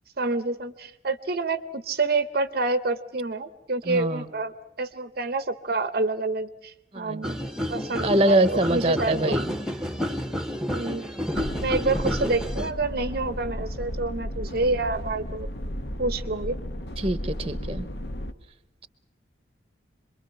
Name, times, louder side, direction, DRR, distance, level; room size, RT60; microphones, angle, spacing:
voice 1, 0.2-9.4 10.7-11.2 11.6-15.5 16.0-16.6, right 3 dB, 50° right, 13 dB, 0.8 m, -28 dB
voice 2, 3.9-4.3 6.9-7.3 8.0-9.5 17.0-17.9, right 1 dB, 30° right, 14 dB, 0.9 m, -24 dB
sound 1, 7.2-12.7, equal, ahead, 1.0 m, -30 dB
sound 2, 11.3-18.3, equal, 60° left, 1.1 m, -34 dB
27.0 x 22.0 x 5.8 m, 0.98 s
head